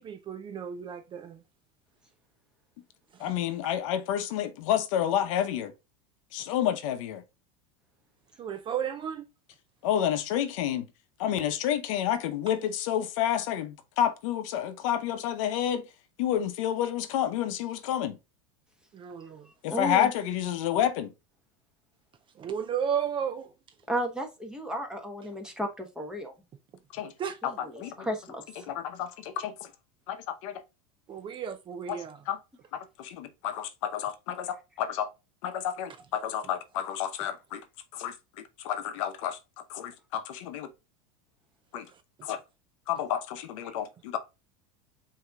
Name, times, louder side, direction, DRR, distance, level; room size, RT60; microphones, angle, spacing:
voice 1, 0.0-1.4 3.1-3.3 8.4-9.3 18.9-19.5 22.4-23.5 27.2-27.4 31.1-32.2, right 8 dB, 30° right, 0.4 m, -33 dB
voice 2, 3.2-5.7 6.3-7.2 9.8-10.9 11.2-15.9 16.2-18.2 19.6-21.1 26.9-27.1 27.4-28.1 28.7-29.7 30.1-30.6 31.9-32.4 32.7-35.1 35.4-37.6 37.9-38.1 38.6-39.4 39.7-40.7 41.7-41.9 42.2-42.4 42.9-44.2, left 10 dB, 70° left, 0.8 m, -30 dB
voice 3, 19.7-20.1 23.9-26.3 27.4-28.7 43.6-43.7, equal, 5° right, 1.1 m, -34 dB
7.9 x 2.9 x 2.3 m
supercardioid pair, 110°, 17 cm